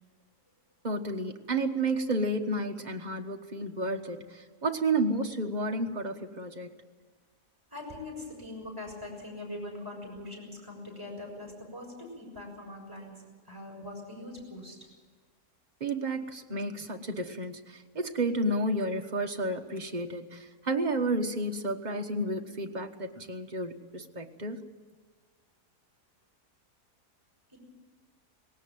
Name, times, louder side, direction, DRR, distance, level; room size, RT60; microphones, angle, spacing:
voice 1, 0.8-6.7 15.8-24.6, right 2 dB, 30° right, 4 dB, 1.3 m, -31 dB
voice 2, 7.7-14.8 27.5-27.6, left 2 dB, 15° right, -1 dB, 6.6 m, -42 dB
19.0 x 17.5 x 9.1 m, 1.4 s
omnidirectional pair, 1.7 m